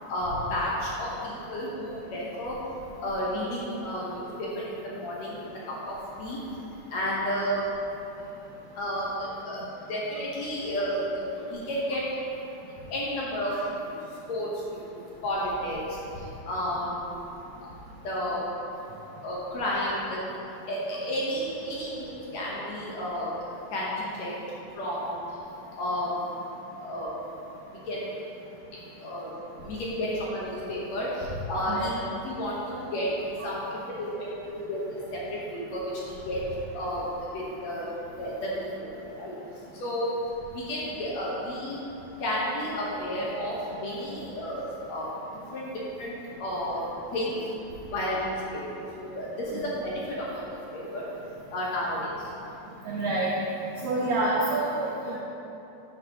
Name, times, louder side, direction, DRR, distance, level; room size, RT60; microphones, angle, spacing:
voice 1, 0.1-2.6 3.0-5.4 5.7-6.4 6.9-7.8 8.7-9.6 9.9-12.0 12.9-17.2 17.6-17.7 18.0-18.5 19.2-20.2 20.7-23.3 23.7-24.4 24.7-25.2 25.8-26.2 26.8-27.2 27.9-28.1 29.0-29.3 29.6-31.9 32.2-33.1 33.4-34.8 35.1-36.4 36.7-37.0 37.3-37.9 38.2-39.3 39.7-40.1 40.5-41.8 42.2-45.1 45.5-46.8 47.1-47.4 47.9-50.4 50.7-51.0 51.5-52.3, equal, 60° left, -6 dB, 2.1 m, -32 dB
voice 2, 52.9-53.3 53.8-55.2, right 2 dB, 85° right, -3 dB, 1.5 m, -27 dB
11.0 x 7.9 x 3.0 m, 3.0 s
omnidirectional pair, 4.1 m